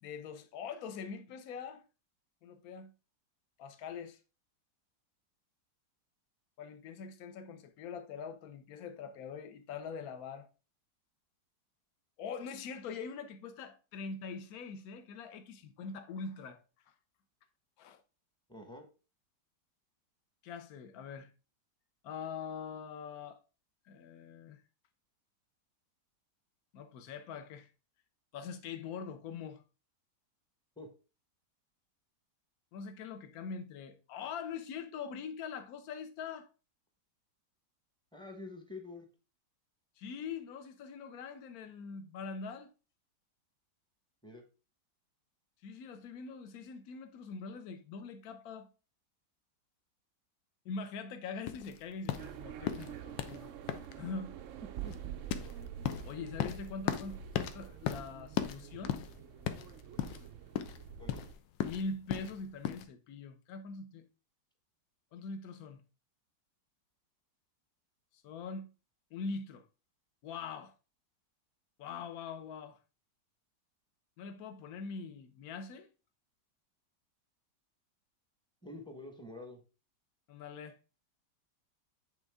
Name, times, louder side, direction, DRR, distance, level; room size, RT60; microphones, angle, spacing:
voice 1, 0.0-1.8 2.4-2.9 3.6-4.2 6.6-10.5 12.2-16.9 17.8-18.0 20.4-21.3 22.0-23.4 23.9-24.6 26.7-27.7 28.3-29.6 32.7-36.5 40.0-42.7 45.6-48.7 50.6-53.5 54.0-54.4 56.0-59.0 61.6-64.1 65.1-65.8 68.2-68.7 69.1-69.6 70.2-70.7 71.8-72.8 74.2-75.9 80.3-80.8, left 5 dB, 60° left, 1.2 m, -43 dB
voice 2, 18.5-18.9 30.8-30.9 38.1-39.1 44.2-44.4 54.8-54.9 61.0-61.2 78.6-79.6, left 2 dB, 5° left, 0.7 m, -47 dB
sound 1, 51.5-62.9, left 11 dB, 85° left, 1.3 m, -38 dB
sound 2, 52.2-61.3, right 8 dB, 75° right, 0.7 m, -47 dB
8.2 x 3.5 x 3.5 m
omnidirectional pair, 1.9 m